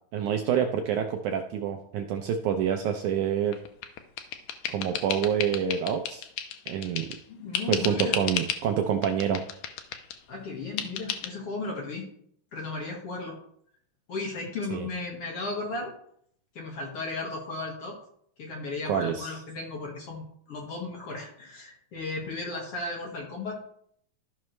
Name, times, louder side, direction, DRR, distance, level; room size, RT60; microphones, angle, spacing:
voice 1, 0.1-3.6 4.7-6.3 6.7-7.1 7.7-9.4 14.7-14.9 18.9-19.3, right 8 dB, 80° right, 5 dB, 1.8 m, -27 dB
sound 1, 3.5-7.2 7.5-8.7 9.0-10.2 10.8-11.3, left 9 dB, 75° left, 1.9 m, -33 dB
voice 2, 7.3-8.2 10.3-12.1 12.5-13.4 14.1-15.9 16.6-18.0 18.4-23.6, left 3 dB, 50° left, -1 dB, 2.1 m, -35 dB
14.0 x 5.8 x 3.2 m, 0.67 s
omnidirectional pair, 4.1 m